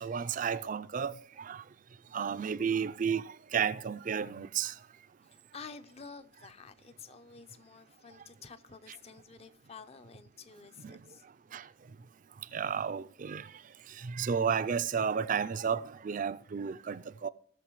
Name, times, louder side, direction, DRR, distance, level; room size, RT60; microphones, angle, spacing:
voice 1, 0.0-1.1 1.5-1.6 2.1-3.2 3.5-4.7 12.5-13.4 14.2-17.3, right 7 dB, 40° right, 0.4 m, -32 dB
voice 2, 5.3-11.2, left 5 dB, 30° left, 0.5 m, -50 dB
17.5 x 6.7 x 3.1 m
head